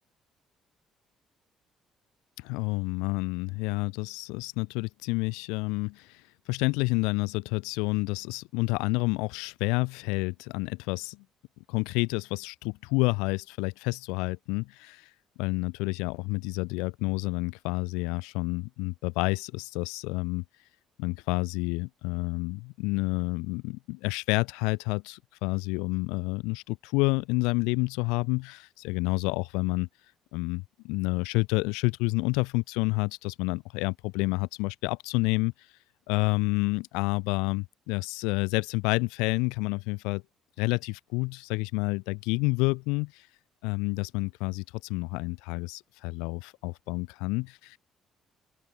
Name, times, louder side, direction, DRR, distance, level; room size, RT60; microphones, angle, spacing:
voice 1, 2.4-6.1 6.5-11.2 11.7-15.1 15.4-20.4 21.0-29.9 30.3-35.5 36.1-40.2 40.6-43.2 43.6-47.8, left 27 dB, 70° left, 1.9 m, -29 dB
figure-of-eight pair, 45°, 0 cm